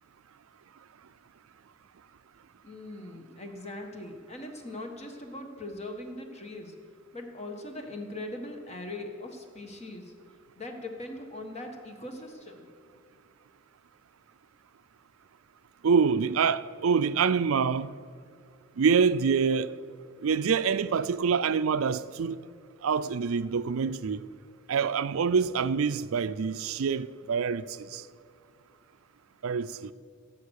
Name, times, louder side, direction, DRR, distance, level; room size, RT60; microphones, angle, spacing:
voice 1, 2.6-6.8 7.1-10.1 10.5-12.7, left 1 dB, 30° left, 1.5 m, -40 dB
voice 2, 15.8-18.0 18.8-19.8 20.2-22.4 22.8-24.2 24.7-28.0 29.4-29.9, right 6 dB, 90° right, 0.4 m, -26 dB
16.5 x 7.7 x 6.5 m
head